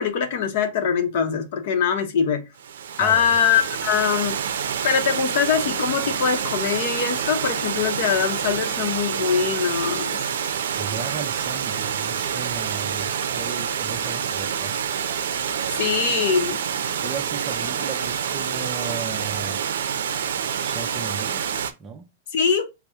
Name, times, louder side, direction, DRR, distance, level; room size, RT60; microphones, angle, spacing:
voice 1, 0.0-2.4 3.0-4.4 4.8-10.2 15.7-16.6 22.3-22.7, left 7 dB, 55° left, 0.7 m, -22 dB
Water, 2.6-21.7, right 8 dB, 90° right, 0.5 m, -27 dB
voice 2, 10.7-14.8 17.0-19.6 20.6-21.5 21.8-22.1, right 6 dB, 20° right, 0.5 m, -35 dB
4.2 x 2.0 x 3.4 m
supercardioid pair, 160°, 0 cm